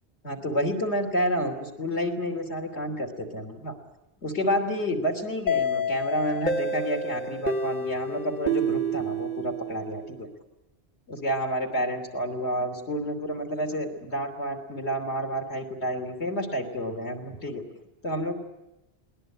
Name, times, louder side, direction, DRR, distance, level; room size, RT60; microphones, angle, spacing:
voice 1, 0.2-3.8 4.2-10.3 11.1-17.6 18.0-18.3, equal, 80° left, 3 dB, 3.5 m, -29 dB
sound 1, 5.5-10.1, equal, 40° left, 1.4 m, -29 dB
21.0 x 19.5 x 9.8 m, 0.95 s
omnidirectional pair, 1.1 m